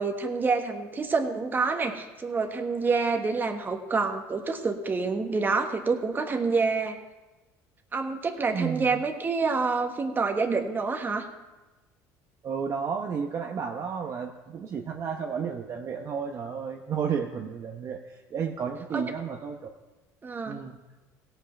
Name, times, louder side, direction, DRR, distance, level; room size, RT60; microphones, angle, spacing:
voice 1, 0.0-7.0 7.9-11.3 18.9-19.0 20.2-20.6, right 4 dB, 25° right, 4 dB, 1.3 m, -27 dB
voice 2, 8.5-9.0 12.4-19.6 20.5-20.8, right 6 dB, 45° right, 2 dB, 0.9 m, -32 dB
16.5 x 5.6 x 5.8 m, 1.1 s
supercardioid pair, 100°, 8 cm